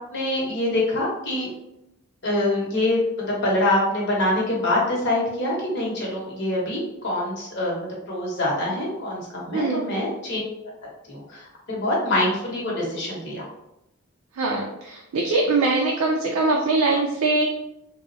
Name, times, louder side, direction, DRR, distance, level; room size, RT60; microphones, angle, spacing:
voice 1, 0.1-1.5 2.2-10.4 11.1-13.4, left 1 dB, 50° left, -4 dB, 0.9 m, -25 dB
voice 2, 9.5-9.9 14.3-17.5, right 3 dB, 80° right, 0 dB, 0.4 m, -22 dB
3.6 x 2.0 x 2.6 m, 0.85 s
head